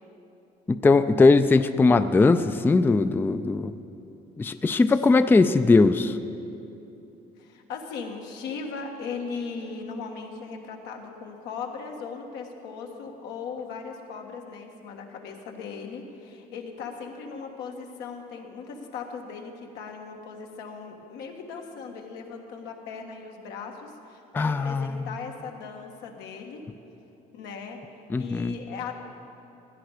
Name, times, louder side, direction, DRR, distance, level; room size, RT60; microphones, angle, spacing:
voice 1, 0.7-3.7 4.4-6.2 24.3-25.0 28.1-28.5, left 3 dB, 10° left, 11 dB, 0.3 m, -20 dB
voice 2, 7.4-26.6 27.3-27.8 28.2-28.9, left 5 dB, 90° left, 2 dB, 1.5 m, -38 dB
16.5 x 10.5 x 4.9 m, 2.9 s
cardioid pair, 110°, 17 cm